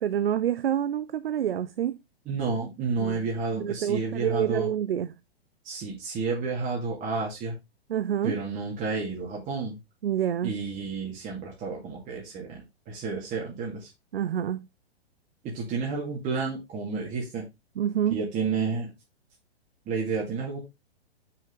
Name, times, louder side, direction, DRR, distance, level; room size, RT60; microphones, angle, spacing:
voice 1, 0.0-2.0 3.0-3.2 3.6-5.1 7.9-8.4 10.0-10.5 14.1-14.7 17.8-18.2, right 10 dB, 65° right, 0.6 m, -27 dB
voice 2, 2.3-4.7 5.6-7.6 8.2-9.8 10.4-13.9 15.4-17.4 18.1-18.9 19.9-20.6, right 4 dB, 25° right, 2.3 m, -31 dB
7.2 x 5.9 x 3.7 m
figure-of-eight pair, 110°, 32 cm